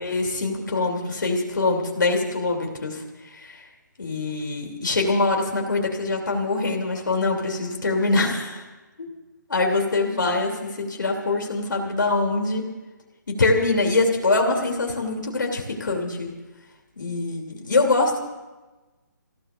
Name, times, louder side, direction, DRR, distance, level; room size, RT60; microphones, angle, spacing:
voice 1, 0.0-3.7 4.0-8.7 9.5-12.7 13.4-16.3 17.0-18.2, left 3 dB, 80° left, 1 dB, 3.2 m, -24 dB
28.5 x 16.5 x 2.6 m, 1.2 s
hypercardioid pair, 155°, 10 cm